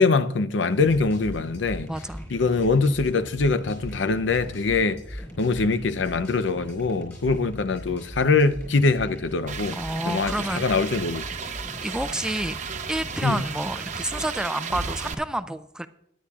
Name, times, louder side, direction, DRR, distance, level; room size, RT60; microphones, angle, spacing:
voice 1, 0.0-1.9 2.3-5.0 5.4-9.8 10.1-11.2 13.2-13.4, left 4 dB, 80° left, 0.6 m, -23 dB
sound 1, 0.7-14.4, equal, 15° left, 4.6 m, -40 dB
voice 2, 1.9-2.2 9.7-10.6 11.8-12.6 12.9-15.9, right 1 dB, 5° right, 0.3 m, -29 dB
sound 2, 9.5-15.1, right 6 dB, 40° right, 0.7 m, -34 dB
18.5 x 10.0 x 2.4 m
head